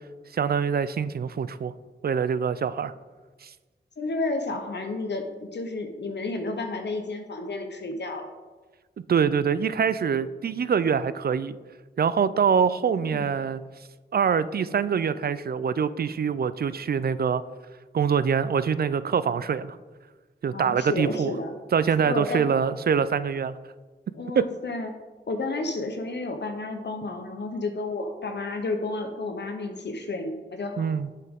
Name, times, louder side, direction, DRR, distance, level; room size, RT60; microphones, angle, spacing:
voice 1, 0.3-1.7 2.0-2.9 3.4-3.5 9.1-11.6 12.0-13.6 14.1-17.4 17.9-19.8 20.4-21.3 21.7-23.6 24.3-24.4 30.8-31.1, right 7 dB, 50° right, 15 dB, 0.4 m, -24 dB
voice 2, 4.0-5.3 5.5-8.3 13.0-13.3 20.5-21.5 22.0-22.6 24.1-24.9 25.3-31.0, left 2 dB, 60° left, 5 dB, 0.8 m, -31 dB
7.8 x 5.8 x 3.6 m, 1.3 s
cardioid pair, 55°, 20 cm